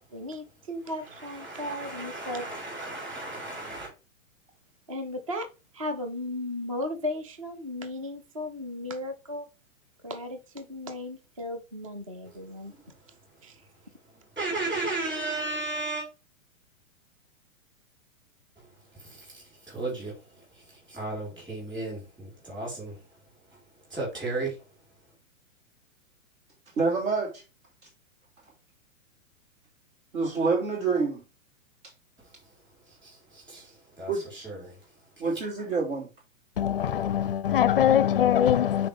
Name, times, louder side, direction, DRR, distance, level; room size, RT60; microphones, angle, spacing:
voice 1, 0.0-2.5 4.9-5.5 5.7-9.5 10.0-12.7 13.4-13.6, left 1 dB, 25° right, 0.4 m, -35 dB
voice 2, 1.1-3.9 12.2-12.9 14.1-16.0 18.9-20.2 20.5-23.0 23.5-23.6 23.9-24.6 32.9-34.7, right 2 dB, 10° right, 4.1 m, -35 dB
voice 3, 26.8-27.4 30.1-31.2 34.1-34.2 35.2-36.1, right 4 dB, 70° right, 3.5 m, -27 dB
voice 4, 36.6-38.9, left 10 dB, 45° left, 0.4 m, -22 dB
9.6 x 4.2 x 3.4 m
hypercardioid pair, 175°, 42 cm